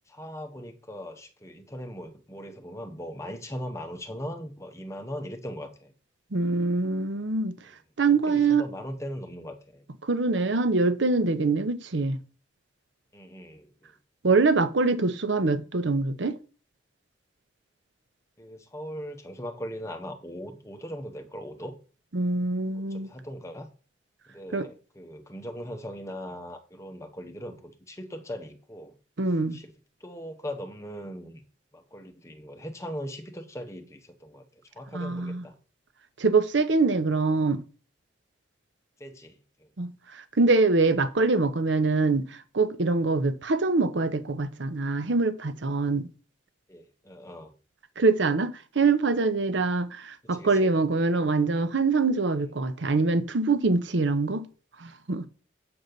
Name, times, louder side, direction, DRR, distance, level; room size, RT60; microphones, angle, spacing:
voice 1, 0.1-5.9 7.6-7.7 8.1-9.9 13.1-13.9 18.4-21.8 22.9-23.7 24.3-29.0 29.5-29.7 30.0-31.4 31.7-35.5 39.0-39.7 46.7-47.5 50.3-50.7, equal, 15° left, 1.0 m, -39 dB
voice 2, 6.3-7.6 8.0-8.6 10.0-12.2 14.2-16.4 22.1-23.1 24.5-24.7 29.2-29.6 34.9-35.4 36.2-37.6 39.8-46.1 48.0-54.5 54.8-55.3, right 3 dB, 75° right, 0.8 m, -24 dB
7.8 x 4.0 x 6.7 m
head